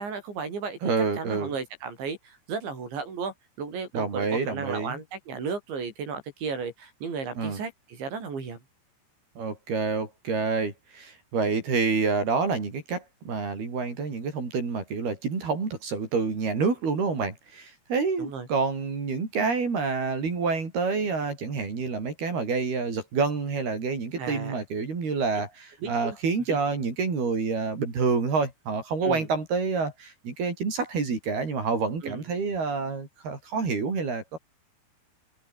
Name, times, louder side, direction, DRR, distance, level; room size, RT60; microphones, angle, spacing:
voice 1, 0.0-8.6 18.2-18.5 24.2-24.6 25.8-26.2 26.5-26.6 29.0-29.3 32.0-32.2, right 5 dB, 80° right, 9.0 m, -34 dB
voice 2, 0.8-1.5 3.9-5.0 7.4-7.6 9.4-34.4, right 4 dB, 60° right, 7.8 m, -28 dB
omnidirectional pair, 5.1 m